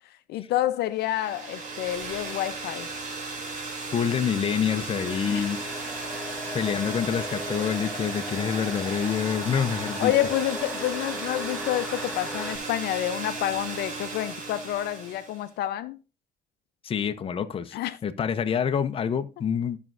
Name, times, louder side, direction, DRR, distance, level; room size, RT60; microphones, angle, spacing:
voice 1, 0.3-2.9 5.3-5.5 10.0-16.0 17.7-18.0, left 13 dB, 75° left, 0.6 m, -28 dB
sound 1, 1.0-15.4, right 3 dB, 50° right, 2.9 m, -35 dB
voice 2, 3.9-5.9 6.5-10.1 16.8-19.8, left 7 dB, 35° left, 0.7 m, -27 dB
sound 2, 5.0-12.6, left 1 dB, 5° left, 1.4 m, -38 dB
13.5 x 6.0 x 2.5 m
cardioid pair, 110°, 17 cm